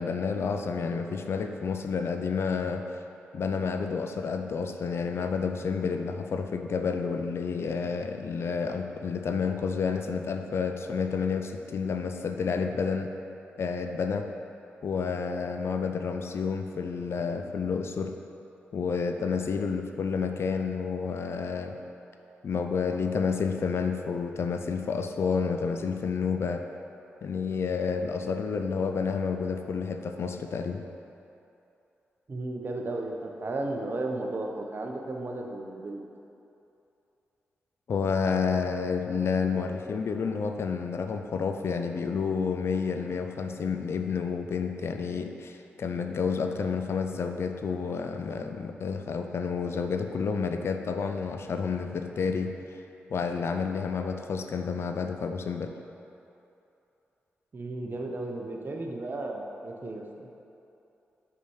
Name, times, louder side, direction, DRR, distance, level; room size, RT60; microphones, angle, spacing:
voice 1, 0.0-2.9 3.3-13.1 13.6-14.3 14.8-18.1 18.7-21.8 22.4-26.6 27.2-30.8 37.9-52.8 53.1-55.7, left 5 dB, 65° left, 6 dB, 0.5 m, -30 dB
voice 2, 32.3-36.0 57.5-60.3, right 2 dB, 45° right, 1 dB, 1.0 m, -34 dB
5.8 x 5.7 x 4.9 m, 2.8 s
supercardioid pair, 50°, 5 cm